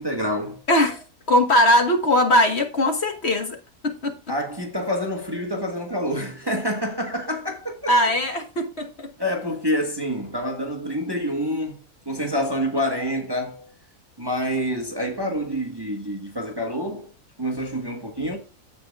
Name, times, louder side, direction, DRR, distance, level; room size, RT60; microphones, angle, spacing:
voice 1, 0.0-0.6 4.3-8.0 9.2-11.8 12.0-13.7 14.2-17.1 17.4-18.4, equal, 15° right, 1.3 m, -27 dB
voice 2, 0.7-3.6 3.8-4.1 7.9-9.1, left 1 dB, 45° left, 1.6 m, -20 dB
15.5 x 5.2 x 2.4 m
omnidirectional pair, 1.6 m